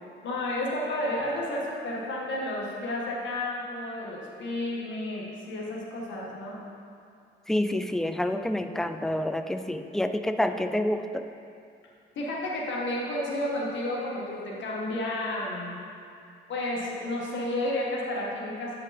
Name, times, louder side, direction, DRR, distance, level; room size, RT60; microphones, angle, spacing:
voice 1, 0.2-6.6 12.1-15.8 16.5-18.8, left 1 dB, 70° left, -4 dB, 1.6 m, -31 dB
voice 2, 7.5-11.2, left 1 dB, ahead, 8 dB, 0.3 m, -28 dB
8.5 x 5.1 x 4.2 m, 2.4 s
cardioid pair, 90°, 20 cm